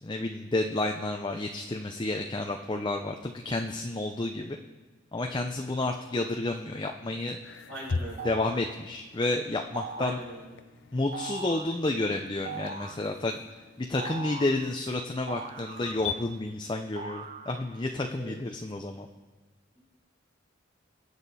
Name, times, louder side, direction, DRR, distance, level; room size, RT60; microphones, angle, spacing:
voice 1, 0.0-4.6 5.1-7.4 8.2-10.2 10.9-13.4 13.8-19.1, left 2 dB, 25° left, 3 dB, 0.6 m, -30 dB
sound 1, 7.4-16.2, left 5 dB, 75° left, 0.6 m, -41 dB
voice 2, 7.7-8.3 10.0-10.4 18.2-18.3 19.7-19.8, right 1 dB, 70° right, -4 dB, 5.3 m, -40 dB
sound 2, 8.2-8.7 9.7-10.3 11.1-11.7 12.4-13.1 14.0-14.6 15.3-16.2 17.0-17.8, right 4 dB, 40° right, 0.8 m, -40 dB
23.5 x 8.1 x 4.2 m, 1.2 s
head